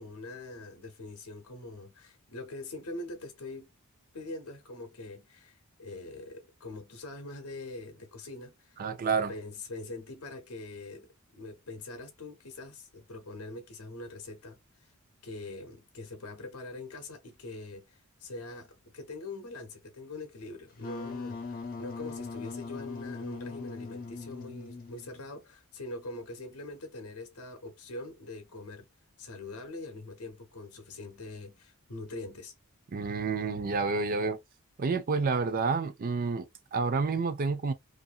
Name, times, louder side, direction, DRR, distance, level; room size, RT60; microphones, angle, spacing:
voice 1, 0.0-3.7 4.1-8.8 9.3-14.9 15.2-28.9 29.2-32.5, left 2 dB, 75° left, 0.8 m, -43 dB
voice 2, 8.8-9.3 32.9-34.4 34.8-37.7, right 4 dB, 40° right, 0.4 m, -29 dB
Wind instrument woodwind instrument, 20.7-25.3, left 4 dB, 40° left, 0.7 m, -40 dB
2.6 x 2.5 x 2.4 m
head